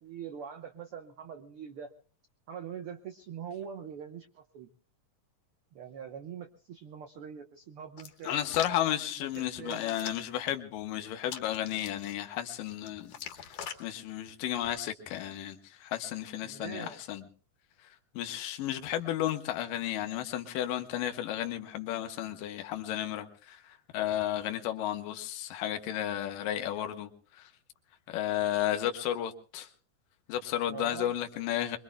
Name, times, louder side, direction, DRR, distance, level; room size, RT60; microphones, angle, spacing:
voice 1, 0.0-1.9 2.5-4.7 5.7-8.5 9.6-10.0 16.4-17.0 30.7-31.1, right 7 dB, 80° right, 1.2 m, -43 dB
Hands, 8.0-8.8 9.3-10.4 11.3-12.1 12.6-13.8 14.5-14.8, left 8 dB, 60° left, 2.3 m, -43 dB
voice 2, 8.2-17.2 18.1-27.5 28.1-29.7 30.3-31.8, left 12 dB, 85° left, 2.7 m, -33 dB
24.0 x 23.0 x 2.2 m
omnidirectional pair, 3.8 m